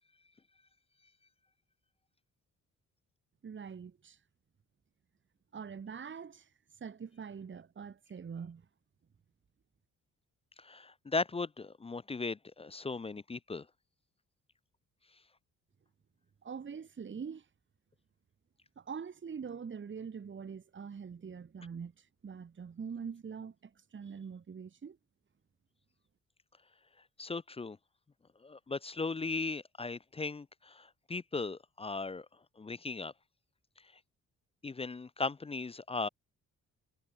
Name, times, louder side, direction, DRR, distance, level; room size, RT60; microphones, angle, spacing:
voice 1, 3.4-4.2 5.5-6.5 6.8-8.6 16.4-17.4 18.8-25.0, right 6 dB, 35° right, 1.5 m, -44 dB
voice 2, 10.6-13.7 27.2-27.8 28.4-32.3 32.6-33.1 34.6-36.1, left 3 dB, 20° left, 0.5 m, -37 dB
cardioid pair, 75°, 32 cm